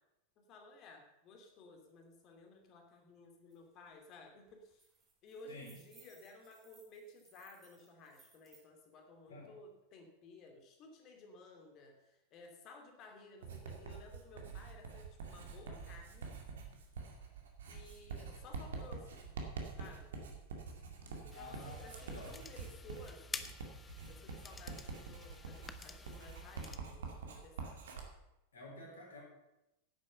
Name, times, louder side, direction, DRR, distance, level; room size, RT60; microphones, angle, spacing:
voice 1, 0.4-4.9 5.2-16.4 17.7-19.3 19.8-20.1 21.1-23.5 24.1-27.8, left 3 dB, 35° left, 3 dB, 2.6 m, -56 dB
Key out of the pocket, 3.5-3.6 3.9-4.2 4.5-8.6, right 4 dB, 20° right, 4.5 m, -65 dB
Writing, 13.4-28.1, right 5 dB, 60° right, 2.2 m, -46 dB
voice 2, 21.3-22.3 28.5-29.2, left 1 dB, 65° left, 0 dB, 4.1 m, -50 dB
sound 1, 21.3-26.8, left 4 dB, 15° left, 0.8 m, -50 dB
10.5 x 9.0 x 6.7 m, 0.92 s
figure-of-eight pair, 90°, 0 cm